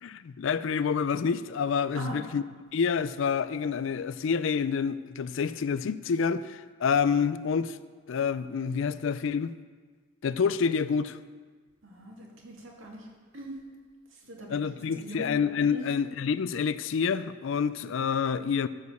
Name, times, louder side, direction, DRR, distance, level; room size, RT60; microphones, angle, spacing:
voice 1, 0.0-2.4 2.7-7.8 8.1-9.5 10.2-11.2 14.5-18.7, left 6 dB, 65° left, 15 dB, 0.4 m, -28 dB
voice 2, 1.9-2.3 11.8-13.1 13.3-13.6 14.1-15.3 15.7-15.8, right 1 dB, 70° right, -1 dB, 2.2 m, -42 dB
13.5 x 4.9 x 7.0 m, 1.5 s
head